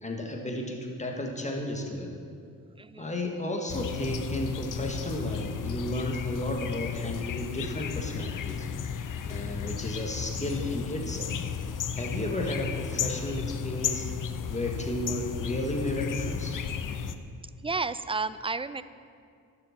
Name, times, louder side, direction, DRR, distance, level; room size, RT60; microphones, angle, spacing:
voice 1, 0.0-2.2 3.0-8.7 9.3-11.3 12.0-14.1 14.5-16.6, left 1 dB, 20° left, 1 dB, 1.9 m, -33 dB
voice 2, 2.8-3.2 17.6-18.8, right 4 dB, 15° right, 14 dB, 0.4 m, -32 dB
sound 1, 3.7-17.1, left 7 dB, 55° left, 0.7 m, -34 dB
11.0 x 7.0 x 6.1 m, 2.3 s
supercardioid pair, 55°, 37 cm